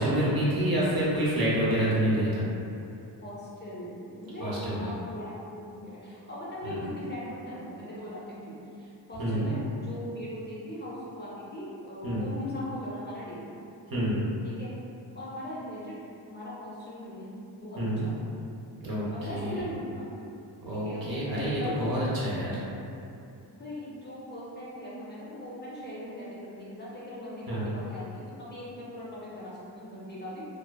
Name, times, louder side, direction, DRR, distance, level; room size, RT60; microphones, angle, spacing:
voice 1, 0.0-2.4 4.4-4.8 6.7-6.8 9.2-9.5 12.0-12.2 13.9-14.2 17.8-18.0 18.8-19.0 19.3-19.6 20.6-22.5 27.5-27.6, equal, 55° right, -8 dB, 0.8 m, -27 dB
voice 2, 3.2-13.5 14.4-14.7 15.1-16.0 16.3-17.3 17.6-18.2 19.1-20.1 20.8-21.8 22.1-22.3 23.6-30.5, left 1 dB, 25° left, -8 dB, 0.6 m, -40 dB
2.4 x 2.3 x 2.3 m, 2.7 s
cardioid pair, 75°, 43 cm